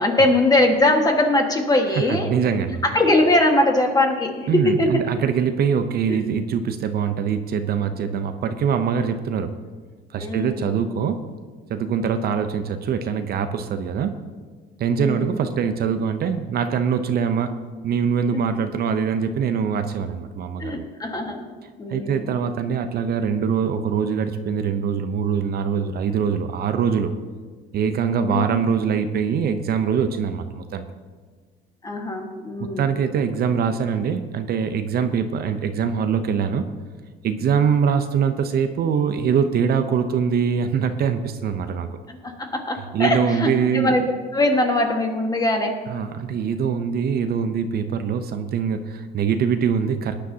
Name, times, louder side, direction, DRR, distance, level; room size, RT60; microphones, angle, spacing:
voice 1, 0.0-2.3 2.8-5.0 6.1-6.2 10.2-10.7 15.0-15.4 20.6-21.4 21.8-22.3 28.3-28.4 31.8-32.9 42.1-44.0 44.3-45.8, left 2 dB, 20° left, 3 dB, 1.6 m, -21 dB
voice 2, 1.9-2.8 4.5-9.5 10.1-11.2 11.7-14.2 14.8-17.5 17.8-20.9 21.9-27.1 27.7-30.8 32.6-36.6 37.2-41.9 42.9-44.0 45.9-50.2, right 7 dB, 50° right, 8 dB, 0.7 m, -23 dB
18.5 x 10.0 x 2.8 m, 1.5 s
cardioid pair, 120°, 20 cm